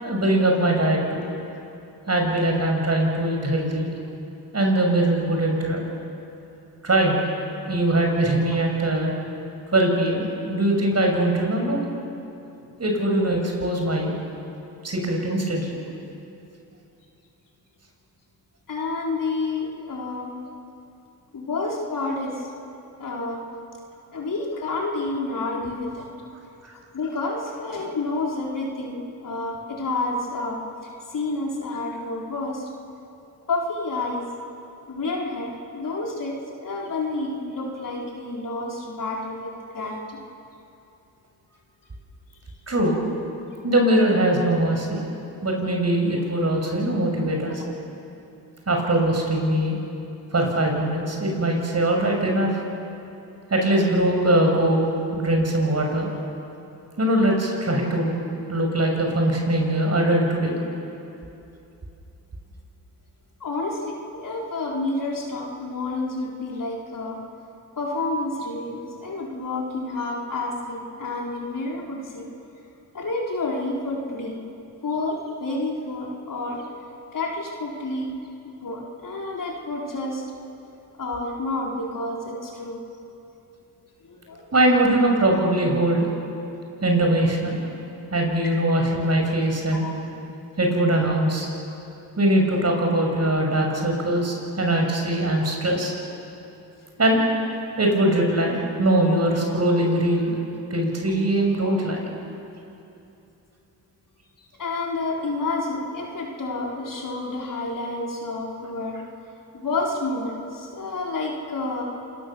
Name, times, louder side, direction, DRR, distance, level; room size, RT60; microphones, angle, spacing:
voice 1, 0.0-1.2 2.1-4.0 4.5-5.8 6.8-7.2 7.7-9.1 9.7-11.8 12.8-14.1 14.8-15.8 26.6-26.7 42.7-43.0 43.6-45.0 45.4-47.6 48.7-49.8 50.3-52.6 53.5-56.1 57.0-58.1 58.5-60.6 84.5-86.1 86.8-87.6 88.1-89.9 90.6-91.5 92.2-95.9 97.0-97.2 97.8-100.4 100.7-102.1, right 1 dB, 40° right, 1 dB, 6.7 m, -21 dB
voice 2, 18.7-20.3 21.3-22.5 23.0-23.5 24.1-26.1 26.9-30.6 31.1-32.7 33.5-34.3 34.9-40.2 63.4-67.2 67.8-72.3 72.9-74.4 74.8-76.7 77.1-78.1 78.4-80.2 80.9-82.8 84.0-84.5 88.1-88.2 89.7-90.2 101.6-101.7 104.6-109.0 109.5-111.8, left 2 dB, 50° left, -2 dB, 4.7 m, -29 dB
27.0 x 20.0 x 7.3 m, 2.8 s
supercardioid pair, 55°, 41 cm